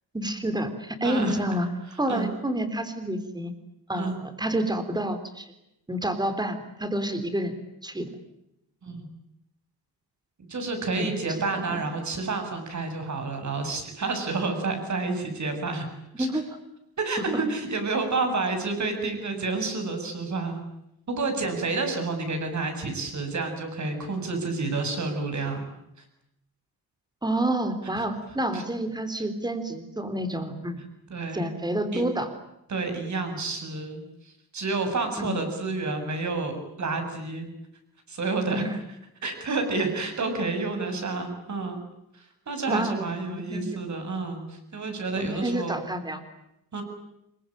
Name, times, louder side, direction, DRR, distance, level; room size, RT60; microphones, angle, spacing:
voice 1, 0.1-1.7 2.0-3.5 3.9-5.5 5.9-7.6 7.8-8.1 11.0-11.1 11.7-11.9 16.1-16.5 27.2-30.8 31.3-32.3 35.2-35.4 38.5-38.7 42.7-43.6 45.2-46.2, right 1 dB, 10° right, 10 dB, 3.7 m, -29 dB
voice 2, 1.0-1.4 1.9-2.3 3.9-4.2 8.8-9.1 10.5-15.9 16.2-16.3 17.0-20.6 21.1-25.6 28.0-28.1 28.5-28.6 31.1-31.5 31.9-32.1 32.7-37.5 38.1-38.7 39.2-41.8 42.1-45.8 46.7-46.8, right 3 dB, 45° right, 6 dB, 7.7 m, -29 dB
27.5 x 23.5 x 9.0 m, 0.84 s
wide cardioid pair, 180°, 39 cm